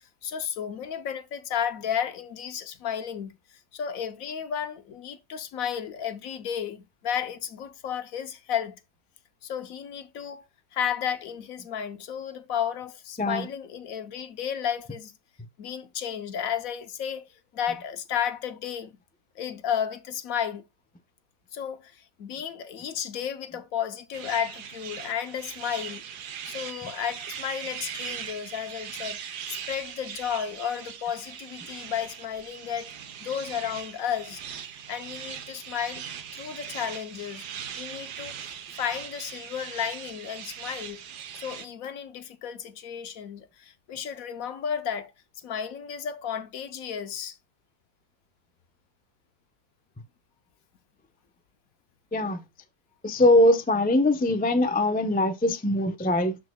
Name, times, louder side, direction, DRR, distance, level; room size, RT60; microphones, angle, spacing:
voice 1, 0.2-3.3 3.7-8.8 9.4-15.1 15.6-18.9 19.4-20.6 21.5-26.0 26.4-29.2 29.5-32.9 33.2-34.4 34.9-36.1 36.3-37.5 37.8-38.3 38.8-41.0 41.4-45.1 45.4-47.4, left 8 dB, 65° left, 1.1 m, -33 dB
sound 1, 24.1-41.7, right 8 dB, 80° right, 1.5 m, -40 dB
voice 2, 52.1-52.4 53.0-56.4, left 1 dB, 10° left, 0.4 m, -22 dB
12.5 x 4.7 x 2.2 m
omnidirectional pair, 1.7 m